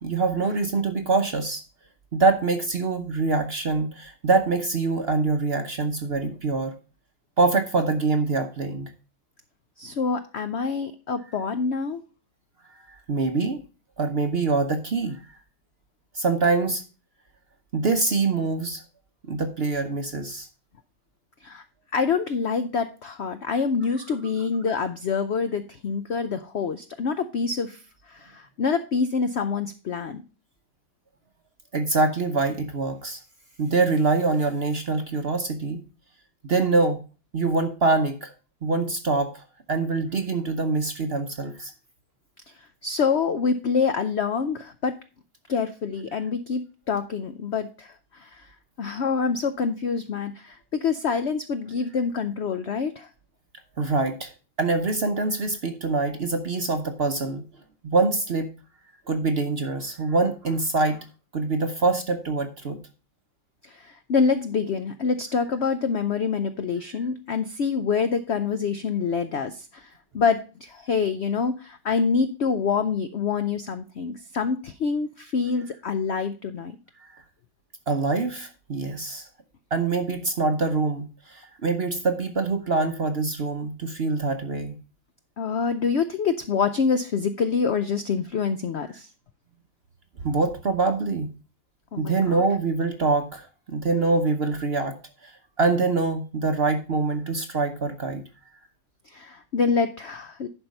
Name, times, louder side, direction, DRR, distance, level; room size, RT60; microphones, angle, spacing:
voice 1, 0.0-1.6 2.1-6.7 7.4-8.9 13.1-13.6 14.0-15.3 16.1-16.8 17.7-18.8 19.3-20.5 31.7-33.2 33.6-35.8 36.4-37.0 37.3-38.3 38.6-41.7 53.8-54.3 54.6-57.5 57.8-58.5 59.1-61.0 61.3-62.8 77.0-77.1 77.9-79.3 79.7-84.8 90.2-91.3 92.0-95.0 95.2-98.2, right 3 dB, 50° right, 7 dB, 0.8 m, -24 dB
voice 2, 9.8-12.0 21.4-21.6 21.9-30.2 42.5-44.9 45.5-48.5 48.8-53.1 63.6-76.8 85.4-89.1 91.9-92.5 99.1-100.5, left 5 dB, 70° left, 10 dB, 0.6 m, -26 dB
11.0 x 4.5 x 5.2 m, 0.34 s
omnidirectional pair, 1.9 m